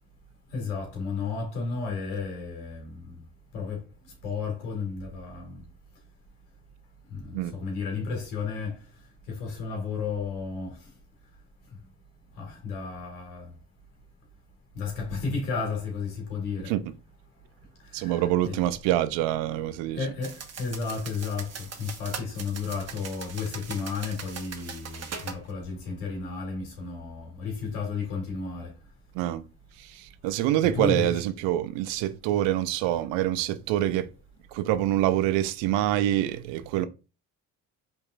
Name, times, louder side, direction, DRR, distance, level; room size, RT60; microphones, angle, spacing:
voice 1, 0.5-3.2 3.5-3.8 4.2-5.6 7.1-8.7 9.3-10.8 12.4-13.5 14.8-16.7 18.0-18.6 19.9-28.7 30.7-31.2, left 5 dB, 85° left, 2.0 m, -33 dB
voice 2, 17.9-20.1 29.1-29.4 29.8-34.1 34.5-36.9, right 13 dB, 75° right, 0.6 m, -26 dB
sound 1, 20.2-25.4, right 6 dB, 35° right, 1.0 m, -40 dB
5.4 x 3.6 x 2.4 m
hypercardioid pair, 55°, 43 cm